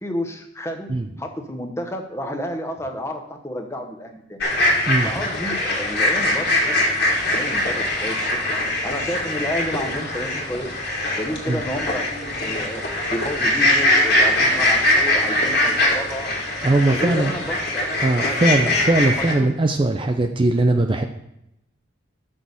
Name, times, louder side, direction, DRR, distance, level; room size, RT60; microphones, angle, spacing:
voice 1, 0.0-0.9 1.2-4.4 5.0-6.8 7.1-8.4 8.8-10.7 11.2-12.8 13.1-16.4 16.9-17.9 18.2-18.4 19.1-19.5 20.0-20.1, equal, 15° left, 4 dB, 0.8 m, -31 dB
sound 1, 4.4-19.3, left 1 dB, 55° left, 1.8 m, -22 dB
voice 2, 16.6-17.3 18.0-21.0, right 2 dB, 25° right, 5 dB, 0.4 m, -20 dB
6.4 x 6.1 x 5.3 m, 0.83 s
head